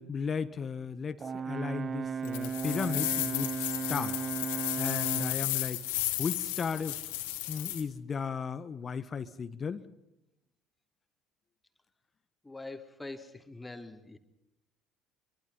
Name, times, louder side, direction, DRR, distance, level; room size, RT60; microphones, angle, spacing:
voice 1, 0.0-4.1 4.8-5.8 6.2-7.0 7.5-9.9, left 6 dB, 35° left, 11 dB, 1.5 m, -35 dB
Brass instrument, 1.2-5.4, right 6 dB, 35° right, 1.1 m, -35 dB
sound 1, 2.2-7.8, left 15 dB, 75° left, 2.9 m, -34 dB
voice 2, 12.4-14.2, left 2 dB, 10° left, 6 dB, 3.3 m, -44 dB
26.0 x 23.5 x 5.6 m, 0.87 s
hypercardioid pair, 60°, 0 cm